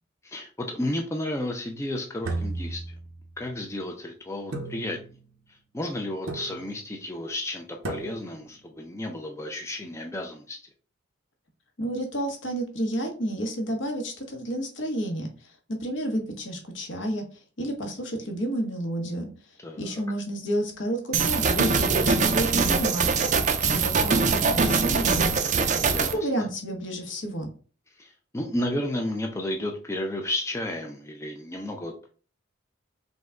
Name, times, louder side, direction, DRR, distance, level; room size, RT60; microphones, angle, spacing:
voice 1, 0.2-2.8 3.4-5.0 5.5-10.6 19.6-19.9 25.8-26.2 28.0-32.1, left 1 dB, 15° left, 2 dB, 0.4 m, -32 dB
sound 1, 2.2-3.4 4.5-5.3 6.3-6.9 7.8-8.5, right 2 dB, 80° right, 0.8 m, -35 dB
voice 2, 11.8-17.2 17.6-19.3 19.8-23.3 23.7-25.4 26.1-27.5, right 1 dB, 65° left, 3 dB, 1.1 m, -30 dB
sound 2, 21.1-26.1, right 4 dB, 35° right, 0.5 m, -23 dB
5.2 x 2.2 x 3.6 m, 0.38 s
head